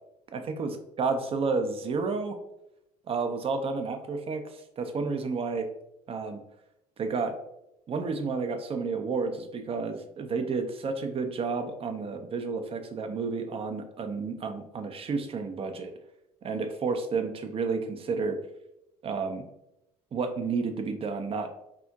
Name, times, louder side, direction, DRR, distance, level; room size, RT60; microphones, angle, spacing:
voice 1, 0.3-2.4 3.1-5.7 6.1-6.4 7.0-7.4 7.9-15.9 16.4-18.4 19.0-19.4 20.1-21.5, right 4 dB, 30° right, 7 dB, 0.4 m, -31 dB
2.8 x 2.4 x 2.3 m, 0.85 s
hypercardioid pair, 65°, 20 cm